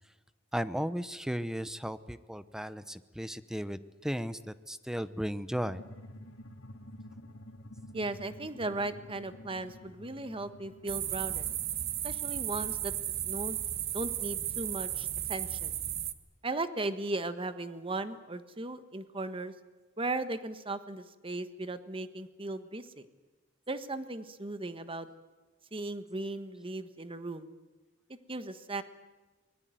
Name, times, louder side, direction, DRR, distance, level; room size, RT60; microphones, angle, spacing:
voice 1, 0.5-5.8, equal, 5° right, 14 dB, 0.8 m, -35 dB
sound 1, 5.5-14.7, left 1 dB, 90° left, 2.8 m, -51 dB
voice 2, 7.9-11.5 12.0-12.9 13.2-13.6 13.9-15.8 16.4-19.5 20.0-22.9 23.7-25.1 25.7-27.5 28.3-28.8, right 2 dB, 30° right, 10 dB, 1.4 m, -37 dB
sound 2, 10.9-16.1, right 11 dB, 55° right, 1.3 m, -34 dB
24.0 x 21.0 x 9.2 m, 1.2 s
head